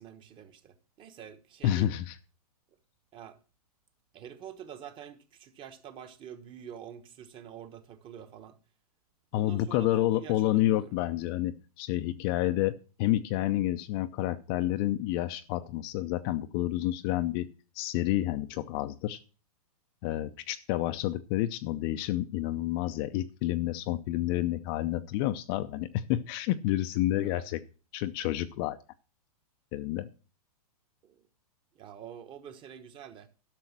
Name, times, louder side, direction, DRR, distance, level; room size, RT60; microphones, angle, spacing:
voice 1, 0.0-1.9 3.1-3.4 4.1-8.6 9.3-10.9 27.1-27.5 31.0-31.2 31.7-33.3, right 9 dB, 25° right, 1.2 m, -47 dB
voice 2, 1.6-2.1 9.3-17.5 17.8-19.2 20.0-27.6 27.9-28.8 29.7-30.1, left 14 dB, 35° left, 0.6 m, -29 dB
12.0 x 6.3 x 6.0 m
hypercardioid pair, 140°, 20 cm